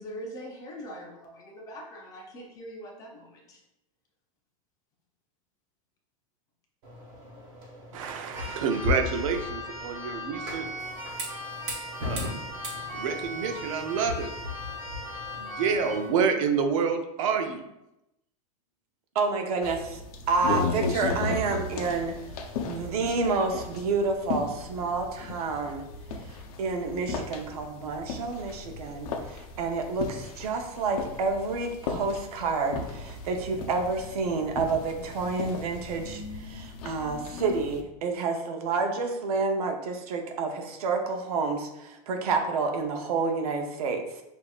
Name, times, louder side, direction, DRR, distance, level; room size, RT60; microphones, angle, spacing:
voice 1, 0.0-3.6, equal, 20° left, 1 dB, 0.5 m, -42 dB
sound 1, 6.8-16.1, left 3 dB, 40° right, 1.1 m, -37 dB
voice 2, 7.9-10.6 12.0-12.4 12.7-14.3 15.4-17.7, right 6 dB, 65° right, 6 dB, 0.6 m, -28 dB
Keyboard (musical), 8.3-16.1, left 1 dB, 20° right, 1.3 m, -39 dB
voice 3, 19.1-22.1 22.7-25.8 26.3-44.0, right 4 dB, 90° right, 4 dB, 0.8 m, -29 dB
sound 2, 19.6-37.8, left 4 dB, 85° left, 0.7 m, -36 dB
6.1 x 2.7 x 2.4 m, 0.88 s
supercardioid pair, 170°, 19 cm